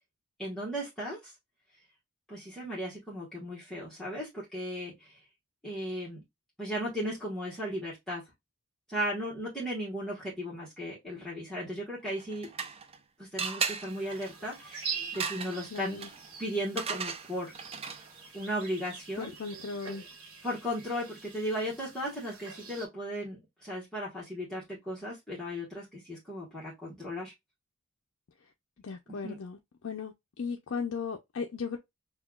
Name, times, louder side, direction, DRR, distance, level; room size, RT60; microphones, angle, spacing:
voice 1, 0.4-1.3 2.3-5.2 5.6-6.2 6.6-8.2 8.9-12.5 13.2-16.0 16.4-17.5 18.3-19.3 20.4-27.3 29.2-29.4, equal, ahead, 1.2 m, -36 dB
sound 1, 12.1-13.0 13.4-18.2, right 6 dB, 30° right, 0.4 m, -37 dB
sound 2, 13.9-22.9, right 6 dB, 75° right, 1.2 m, -44 dB
voice 2, 15.7-16.1 19.2-20.0 28.8-29.6 29.8-31.8, left 5 dB, 60° left, 0.5 m, -36 dB
5.6 x 2.3 x 2.2 m
head